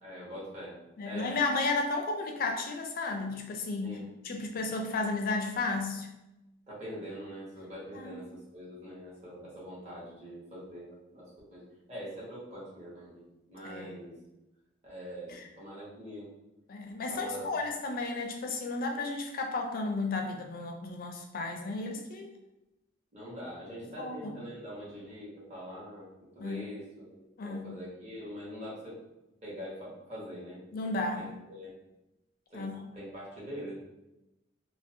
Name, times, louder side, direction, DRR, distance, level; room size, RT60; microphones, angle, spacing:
voice 1, 0.0-0.8 1.0-1.3 3.8-4.1 6.7-11.6 11.9-14.1 14.8-16.3 17.1-17.5 23.1-26.0 26.3-29.0 29.4-30.6 31.1-31.7 32.5-33.7, equal, 35° right, -8 dB, 1.0 m, -43 dB
voice 2, 1.0-4.0 4.2-6.1 7.9-8.2 13.6-13.9 15.3-15.4 16.7-22.3 24.0-24.3 26.4-26.6 27.4-27.7 30.7-31.3 32.5-32.7, left 3 dB, 50° left, 3 dB, 0.4 m, -33 dB
2.5 x 2.0 x 2.6 m, 0.96 s
head